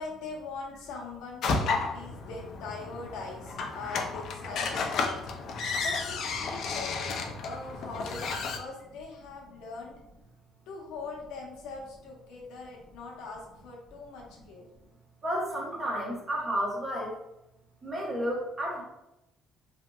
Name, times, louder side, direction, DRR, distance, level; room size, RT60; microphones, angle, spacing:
voice 1, 0.0-5.2 5.8-10.0 10.7-14.6, left 3 dB, 85° left, -1 dB, 0.7 m, -41 dB
sound 1, 1.4-8.6, left 4 dB, 50° left, 0.3 m, -32 dB
voice 2, 15.2-17.1 17.8-18.8, equal, 25° right, -3 dB, 0.8 m, -31 dB
2.8 x 2.8 x 2.2 m, 0.88 s
cardioid pair, 150°, 0 cm